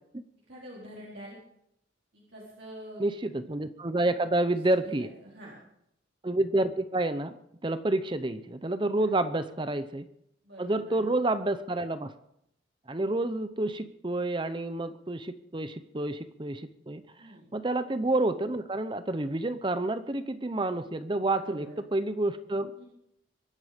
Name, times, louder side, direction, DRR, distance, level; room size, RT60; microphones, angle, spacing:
voice 1, 0.5-1.4 2.1-3.0 4.7-5.5 9.0-9.1 10.4-11.0 17.2-17.5 21.3-21.7 22.8-22.9, right 1 dB, 60° right, -5 dB, 4.2 m, -46 dB
voice 2, 3.0-5.1 6.2-10.0 10.6-12.1 12.9-22.7, right 2 dB, 25° right, 11 dB, 0.7 m, -29 dB
24.0 x 10.5 x 5.1 m, 0.76 s
head